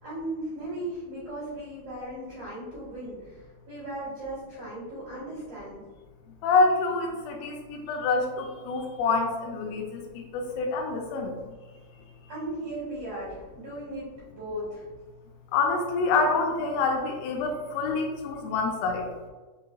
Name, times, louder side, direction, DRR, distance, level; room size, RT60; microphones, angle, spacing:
voice 1, 0.0-5.8 12.3-14.8, right 1 dB, 70° right, -9 dB, 1.8 m, -37 dB
voice 2, 6.4-11.3 15.5-19.1, left 3 dB, 85° left, 1 dB, 3.1 m, -26 dB
7.4 x 2.7 x 2.2 m, 1.3 s
omnidirectional pair, 5.8 m